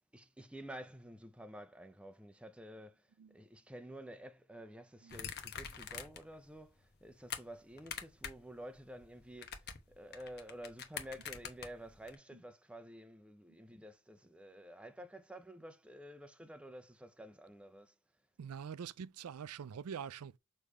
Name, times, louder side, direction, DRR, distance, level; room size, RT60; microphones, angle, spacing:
voice 1, 0.0-3.0 3.3-17.9, right 1 dB, 5° right, 0.5 m, -51 dB
sound 1, 5.1-6.3 6.7-7.4 7.8-8.5 8.7-12.1, left 7 dB, 50° left, 1.0 m, -45 dB
voice 2, 18.4-20.4, right 7 dB, 90° right, 0.4 m, -44 dB
6.7 x 3.2 x 4.8 m
head